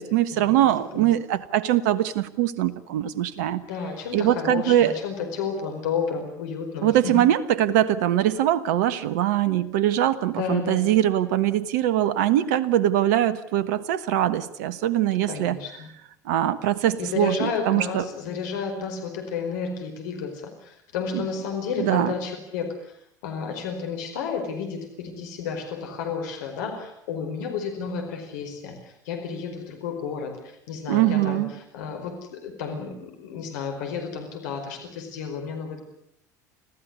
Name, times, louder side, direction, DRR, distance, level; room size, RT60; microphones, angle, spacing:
voice 1, 0.0-3.6 4.1-4.9 6.8-15.6 16.2-18.0 21.1-21.2 21.8-22.1 30.9-31.5, right 12 dB, 70° right, 15 dB, 1.2 m, -22 dB
voice 2, 3.7-7.2 10.4-11.0 15.3-15.9 17.0-23.0 23.2-35.8, left 5 dB, 75° left, 5 dB, 4.8 m, -32 dB
26.0 x 15.5 x 9.7 m, 0.72 s
hypercardioid pair, 75°, 10 cm